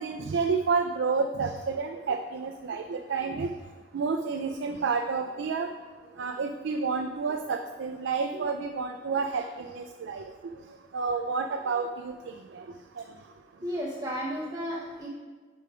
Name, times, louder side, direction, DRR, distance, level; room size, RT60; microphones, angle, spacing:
voice 1, 0.0-3.5 3.9-5.7 6.2-10.3 10.9-12.6, right 4 dB, 80° right, 5 dB, 0.4 m, -30 dB
voice 2, 13.6-15.1, equal, 20° right, -4 dB, 0.7 m, -33 dB
6.6 x 4.9 x 4.9 m, 1.4 s
head